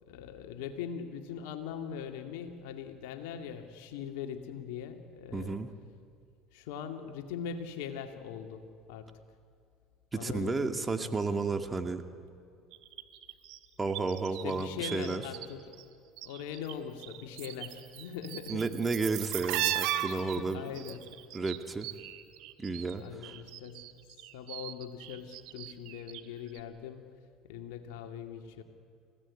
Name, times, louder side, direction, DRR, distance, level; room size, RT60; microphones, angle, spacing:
voice 1, 0.0-5.6 6.5-9.2 10.1-10.8 14.3-15.8 16.2-18.7 20.4-21.2 23.0-24.0 24.3-27.1 27.4-28.6, left 8 dB, 80° left, 6 dB, 2.3 m, -41 dB
voice 2, 5.3-5.7 10.1-12.0 13.8-15.2 18.5-20.6 21.3-21.9 22.6-23.3, right 3 dB, 20° right, 7 dB, 2.2 m, -32 dB
sound 1, 12.7-15.5 15.7-16.7 17.0-22.9 23.2-26.3 26.5-26.6, right 14 dB, 70° right, 1.6 m, -38 dB
29.0 x 17.0 x 9.8 m, 2.4 s
hypercardioid pair, 75°, 0 cm